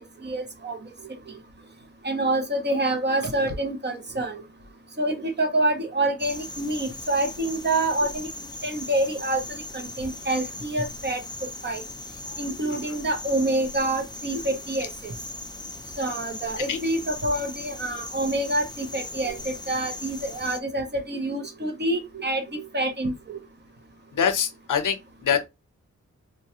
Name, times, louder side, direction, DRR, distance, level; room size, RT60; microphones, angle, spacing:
voice 1, 0.2-0.8 2.0-4.4 5.0-8.3 8.6-11.2 11.6-11.8 12.4-15.1 16.0-23.4, right 1 dB, 35° right, 0.7 m, -27 dB
sound 1, 6.2-20.6, left 2 dB, 15° left, 0.3 m, -39 dB
voice 2, 24.1-25.5, left 7 dB, 80° left, 0.6 m, -24 dB
3.2 x 2.3 x 2.7 m
wide cardioid pair, 135°, 31 cm